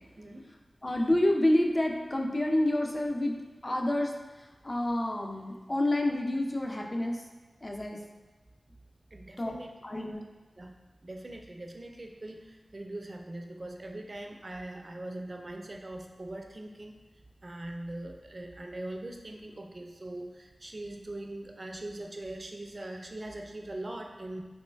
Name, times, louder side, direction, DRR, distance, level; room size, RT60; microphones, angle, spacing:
voice 1, 0.2-0.5 9.1-9.7 10.6-10.7 11.0-17.0 17.4-24.4, right 1 dB, 40° right, 3 dB, 0.4 m, -41 dB
voice 2, 0.8-3.4 3.6-4.1 4.6-7.2 7.6-8.0 9.4-9.5 9.8-10.2, left 1 dB, 35° left, 2 dB, 0.4 m, -28 dB
4.2 x 3.0 x 2.2 m, 1.2 s
wide cardioid pair, 85°, 0 cm